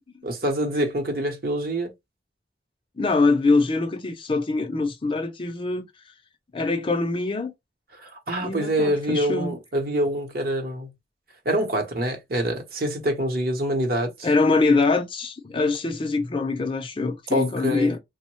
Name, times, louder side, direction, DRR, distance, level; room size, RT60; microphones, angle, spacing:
voice 1, 0.2-1.9 8.0-10.9 11.4-14.1 17.3-17.9, right 1 dB, 55° right, 0.8 m, -25 dB
voice 2, 3.0-5.9 6.5-7.5 8.4-9.6 14.2-18.0, left 3 dB, 30° left, 0.4 m, -23 dB
3.1 x 2.1 x 2.9 m
head